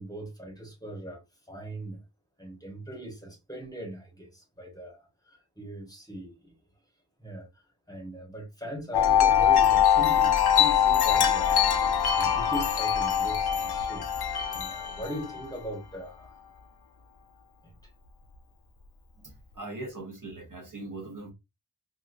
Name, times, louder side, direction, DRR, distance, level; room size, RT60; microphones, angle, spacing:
voice 1, 0.0-2.0 2.4-6.6 7.2-14.1 14.5-16.4 17.6-17.9 19.1-19.3, right 1 dB, 10° left, 1.0 m, -40 dB
Wind chime, 8.9-15.4, left 9 dB, 65° left, 0.6 m, -23 dB
voice 2, 19.2-21.3, right 2 dB, 50° right, 0.9 m, -40 dB
2.8 x 2.5 x 2.4 m
wide cardioid pair, 80°, 42 cm